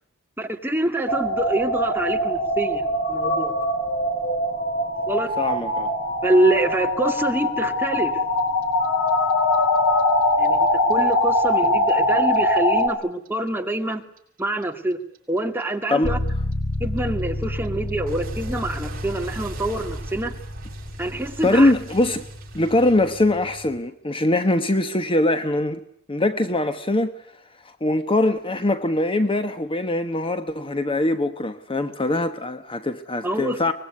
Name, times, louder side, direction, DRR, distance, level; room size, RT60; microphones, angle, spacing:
voice 1, 0.4-2.8 3.1-3.5 5.1-5.3 6.2-8.2 10.4-14.0 14.4-15.0 15.3-16.2 16.8-20.3 21.0-21.7 33.2-33.7, right 1 dB, 10° right, 2.3 m, -25 dB
sound 1, 1.1-12.9, left 1 dB, 60° left, 5.0 m, -22 dB
voice 2, 5.4-5.9 15.9-16.1 21.4-22.2 22.5-27.2 27.8-33.7, left 2 dB, 25° left, 1.1 m, -22 dB
Clock, 8.4-11.4 11.6-14.6 14.9-23.8, right 2 dB, 45° right, 6.9 m, -40 dB
sound 2, 16.0-23.8, left 1 dB, 45° left, 3.4 m, -31 dB
24.0 x 20.5 x 9.5 m
head